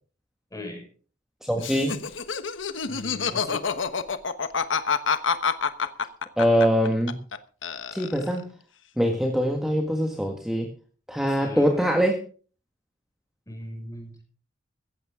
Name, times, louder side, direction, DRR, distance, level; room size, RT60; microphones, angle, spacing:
voice 1, 0.5-0.8 2.9-3.6 11.4-11.9 13.5-14.2, left 1 dB, 20° left, 3 dB, 5.9 m, -39 dB
voice 2, 1.4-2.0 6.4-7.2 7.9-8.5 9.0-10.7 11.1-12.2, equal, 5° right, 3 dB, 1.7 m, -23 dB
Laughter, 1.6-7.4 7.6-8.4, left 6 dB, 85° left, 1.2 m, -27 dB
15.0 x 15.0 x 3.7 m, 0.40 s
head